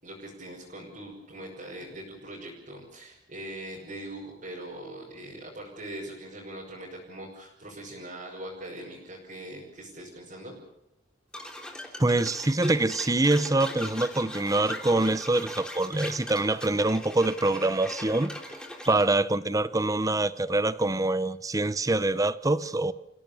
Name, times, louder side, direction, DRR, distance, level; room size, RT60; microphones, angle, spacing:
voice 1, 0.0-10.6 18.9-19.2, right 1 dB, 45° right, 5.8 m, -41 dB
sound 1, 11.3-19.1, left 1 dB, 5° left, 3.2 m, -40 dB
voice 2, 12.0-18.3 18.9-22.9, right 2 dB, 20° right, 0.8 m, -25 dB
29.0 x 17.0 x 7.0 m
head